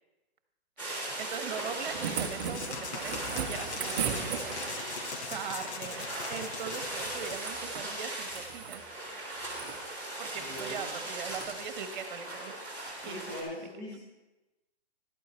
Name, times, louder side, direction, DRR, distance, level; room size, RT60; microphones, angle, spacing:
sound 1, 0.8-13.4, right 1 dB, 5° left, 2.4 m, -39 dB
voice 1, 1.2-3.2 3.5-4.8 5.3-8.8 10.2-12.6 13.0-13.2 13.5-13.6, right 6 dB, 45° right, 7 dB, 1.3 m, -40 dB
sound 2, 1.6-4.9 6.8-7.9 8.2-8.8 9.4-9.8 10.5-10.7 11.2-11.5 12.9-13.0, right 7 dB, 25° right, 0.7 m, -37 dB
sound 3, 2.4-7.4, left 5 dB, 85° left, 1.2 m, -41 dB
voice 2, 10.4-10.9 13.0-14.0, left 1 dB, 25° left, -7 dB, 2.5 m, -41 dB
12.5 x 8.5 x 4.4 m, 1.1 s
hypercardioid pair, 160°, 33 cm